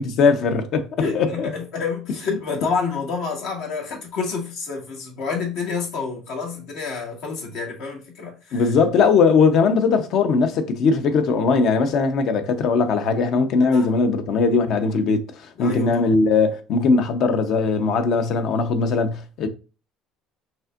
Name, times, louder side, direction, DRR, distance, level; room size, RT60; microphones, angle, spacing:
voice 1, 0.0-0.9 1.1-1.5 8.5-19.5, left 4 dB, 60° left, 0.8 m, -19 dB
voice 2, 1.0-8.7 13.7-13.9 15.6-16.1, left 5 dB, 75° left, 1.9 m, -28 dB
5.5 x 3.4 x 2.5 m
supercardioid pair, 105°, 0 cm